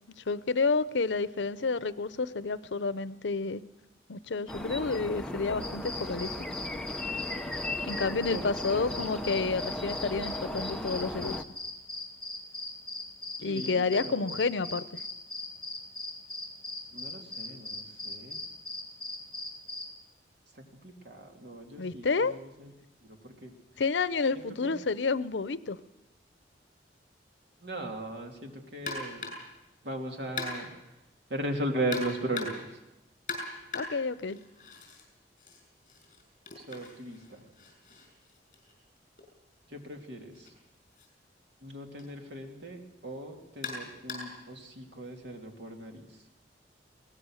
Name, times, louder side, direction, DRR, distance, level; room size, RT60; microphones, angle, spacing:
voice 1, 0.3-3.6 4.1-6.3 7.8-11.4 13.4-14.8 21.8-22.3 23.8-25.8 33.7-34.4, left 4 dB, 90° left, 16 dB, 0.7 m, -30 dB
sound 1, 4.5-11.4, left 1 dB, 5° left, 0.8 m, -36 dB
sound 2, 5.6-19.9, left 2 dB, 20° right, 3.9 m, -39 dB
voice 2, 8.3-8.9 13.4-14.4 16.9-18.4 20.5-22.7 23.0-23.5 24.3-24.8 27.6-29.3 29.8-31.0 31.3-32.8 36.6-37.4 39.7-40.5 41.6-46.3, right 1 dB, 70° right, 2 dB, 3.1 m, -38 dB
sound 3, 28.9-29.6 30.4-30.9 31.9-32.8 33.3-35.0 35.4-39.2 40.3-40.5 41.0-41.1 42.0-42.1 43.6-44.5, left 3 dB, 45° left, 6.4 m, -40 dB
22.0 x 18.5 x 6.4 m, 0.93 s
head